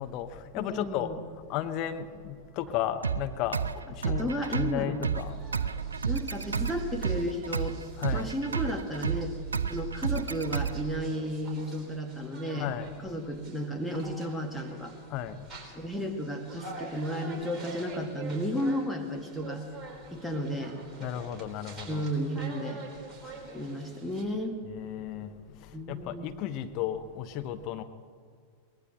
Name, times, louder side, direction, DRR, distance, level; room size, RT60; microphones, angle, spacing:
voice 1, 0.0-6.1 8.0-8.3 9.7-9.8 12.6-13.1 15.1-15.9 19.9-20.2 21.0-22.1 23.2-23.7 24.6-27.8, left 11 dB, 40° left, 0.9 m, -35 dB
voice 2, 0.6-1.2 4.0-5.1 6.1-7.8 8.1-9.3 9.7-12.7 13.0-14.9 15.8-19.6 20.1-20.8 21.9-22.8 23.5-24.6 25.7-26.2, equal, ahead, 2.1 m, -33 dB
sound 1, 3.0-11.0, right 6 dB, 75° right, 0.5 m, -32 dB
sound 2, 5.1-24.2, right 3 dB, 20° right, 4.2 m, -47 dB
23.0 x 20.0 x 3.1 m
figure-of-eight pair, 90°, 0 cm